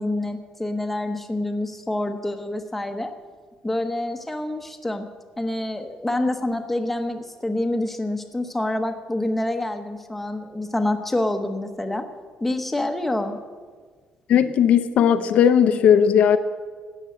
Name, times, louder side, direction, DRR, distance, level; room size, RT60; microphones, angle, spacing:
voice 1, 0.0-3.1 3.6-5.1 5.4-12.1 12.4-13.4, left 1 dB, 5° left, 5 dB, 1.0 m, -27 dB
voice 2, 14.3-16.4, left 8 dB, 60° left, 9 dB, 0.7 m, -17 dB
13.0 x 9.1 x 8.3 m, 1.5 s
cardioid pair, 165°, 2 cm